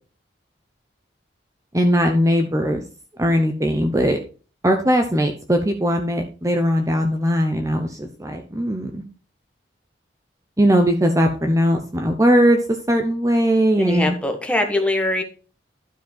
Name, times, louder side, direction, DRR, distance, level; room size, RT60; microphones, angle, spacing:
voice 1, 1.7-2.8 3.2-4.2 4.6-9.0 10.6-12.6 12.9-14.2, equal, 15° right, 4 dB, 0.8 m, -19 dB
voice 2, 13.8-15.2, left 1 dB, 5° left, 4 dB, 1.2 m, -22 dB
12.0 x 5.1 x 4.3 m, 0.36 s
head